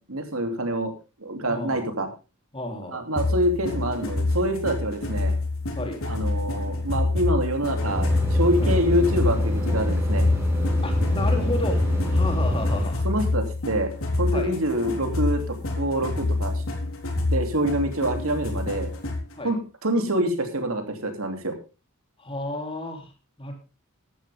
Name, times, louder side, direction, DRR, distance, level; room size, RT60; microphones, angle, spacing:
voice 1, 0.1-0.9 1.2-2.1 2.9-5.4 6.0-10.3 13.0-13.9 14.2-16.6 17.3-18.9 19.4-21.5, right 1 dB, 80° right, 5 dB, 2.9 m, -26 dB
voice 2, 1.5-1.9 2.5-3.0 5.7-6.0 8.6-8.7 10.8-11.8 12.1-13.0 14.3-14.5 19.4-19.5 22.2-23.1 23.4-23.5, left 1 dB, 25° left, 3 dB, 3.2 m, -32 dB
sound 1, 3.2-19.3, left 2 dB, 85° left, 3.7 m, -27 dB
sound 2, 7.8-12.8, left 1 dB, 15° right, 4.3 m, -24 dB
15.0 x 11.5 x 3.6 m, 0.30 s
head